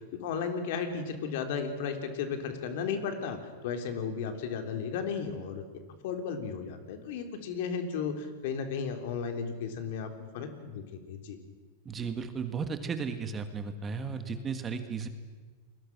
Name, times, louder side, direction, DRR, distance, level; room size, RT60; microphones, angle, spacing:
voice 1, 0.1-5.6 6.0-10.1 10.3-11.4, left 6 dB, 65° left, 6 dB, 3.5 m, -34 dB
voice 2, 11.9-15.1, right 5 dB, 20° right, 8 dB, 1.9 m, -35 dB
29.5 x 21.5 x 6.2 m, 1.4 s
supercardioid pair, 135°, 0 cm